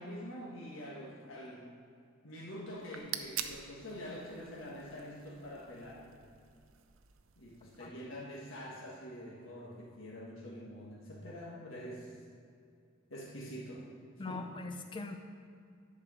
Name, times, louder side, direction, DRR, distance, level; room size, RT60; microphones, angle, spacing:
voice 1, 0.0-1.7 2.2-6.1 7.4-12.1 13.1-13.9 14.3-14.5, equal, 80° left, -5 dB, 1.5 m, -45 dB
sound 1, 2.7-7.9, right 10 dB, 75° right, 0.5 m, -46 dB
voice 2, 14.2-15.2, left 3 dB, 25° left, 6 dB, 0.4 m, -41 dB
11.0 x 4.7 x 6.2 m, 2.3 s
head